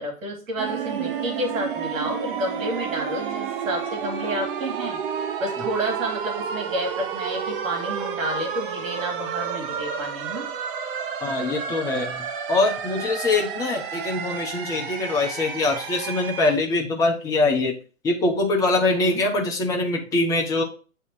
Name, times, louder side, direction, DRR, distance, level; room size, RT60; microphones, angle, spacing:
voice 1, 0.0-5.0 5.4-10.5 18.9-19.2, right 1 dB, 65° right, 2 dB, 2.5 m, -30 dB
sound 1, 0.6-16.6, right 7 dB, 35° right, 0.8 m, -31 dB
voice 2, 11.2-17.7 18.0-20.6, left 2 dB, 10° left, 1 dB, 0.6 m, -23 dB
8.2 x 3.4 x 4.4 m, 0.37 s
hypercardioid pair, 130°, 43 cm